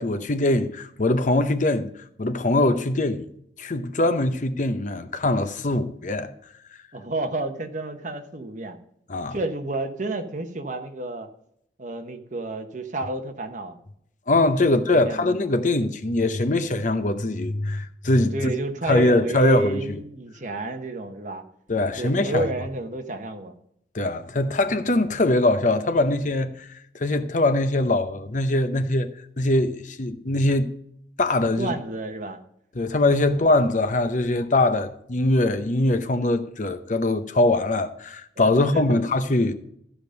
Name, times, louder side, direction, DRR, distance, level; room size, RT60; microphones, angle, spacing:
voice 1, 0.0-1.9 2.2-3.3 3.6-6.3 9.1-9.4 14.3-18.5 18.9-20.0 21.7-22.4 23.9-26.7 26.9-30.7 31.2-31.7 32.7-39.5, left 2 dB, 45° left, 0.8 m, -22 dB
voice 2, 6.9-8.8 9.3-11.3 11.8-13.8 14.7-15.3 18.3-21.4 22.0-23.5 31.6-32.4 38.7-39.0, right 2 dB, 45° right, 1.1 m, -30 dB
14.0 x 5.1 x 5.2 m
head